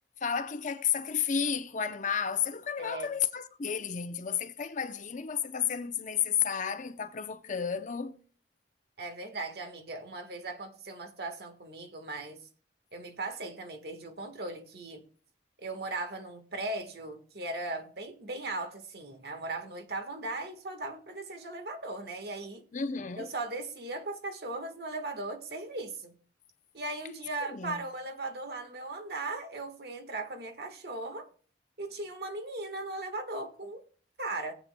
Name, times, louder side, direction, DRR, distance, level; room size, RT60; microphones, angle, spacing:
voice 1, 0.2-8.2 22.7-23.3 27.4-27.8, left 7 dB, 45° left, 0.6 m, -32 dB
voice 2, 2.8-3.1 9.0-12.4 12.9-15.0 15.6-22.6 23.2-26.1 26.7-31.3 31.8-33.8 34.2-34.5, right 2 dB, 60° right, 1.4 m, -38 dB
18.5 x 8.4 x 2.2 m
head